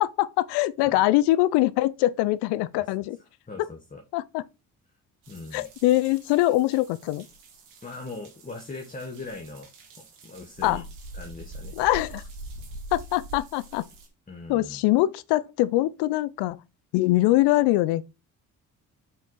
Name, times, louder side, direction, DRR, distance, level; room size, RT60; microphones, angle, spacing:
voice 1, 0.0-3.2 3.6-3.7 4.1-4.4 5.5-7.2 10.6-10.8 11.7-12.2 12.9-13.8 14.5-16.6 16.9-18.0, left 16 dB, 75° left, 0.6 m, -23 dB
voice 2, 3.5-4.0 5.3-5.7 7.8-9.7 10.2-10.8 11.2-11.7 14.3-14.8, left 3 dB, 20° left, 1.5 m, -40 dB
sound 1, 5.2-14.1, right 1 dB, 90° right, 2.0 m, -44 dB
5.7 x 4.8 x 4.3 m
supercardioid pair, 60°, 40 cm